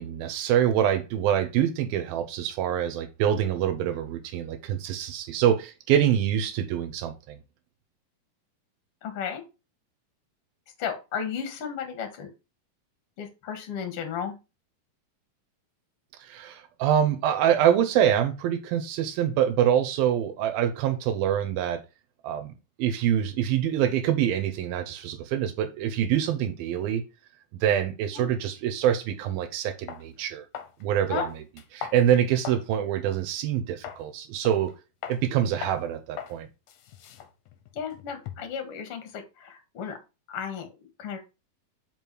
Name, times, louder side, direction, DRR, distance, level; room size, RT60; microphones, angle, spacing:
voice 1, 0.0-7.4 16.2-21.8 22.2-22.5 22.8-27.0 27.6-30.4 30.8-31.3 31.7-34.7 35.1-36.5, right 10 dB, 85° right, 2.7 m, -25 dB
voice 2, 9.0-9.4 10.8-12.3 13.2-14.4 28.2-28.3 31.1-31.3 37.7-40.0 40.3-41.2, left 7 dB, 50° left, 2.0 m, -34 dB
sound 1, 29.3-29.4 29.9-30.1 30.6-30.8 31.2-32.7 33.1-33.2 33.8-34.1 34.5-34.7 35.0-35.2 35.6-35.8 36.2-36.4 36.7-38.6, left 9 dB, 70° left, 2.2 m, -40 dB
5.5 x 5.3 x 4.6 m
omnidirectional pair, 4.1 m